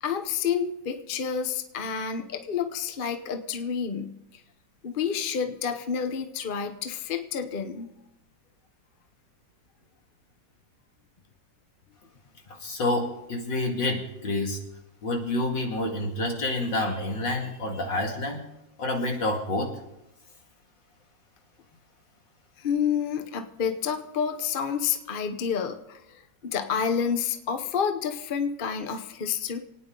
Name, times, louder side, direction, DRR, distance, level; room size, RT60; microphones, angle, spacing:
voice 1, 0.0-4.2 4.8-7.9 22.6-29.6, left 7 dB, 40° left, 7 dB, 0.8 m, -29 dB
voice 2, 12.6-14.6 15.0-18.5 18.8-19.7, left 2 dB, 75° left, 1 dB, 2.9 m, -28 dB
27.5 x 9.6 x 3.8 m, 0.88 s
omnidirectional pair, 2.0 m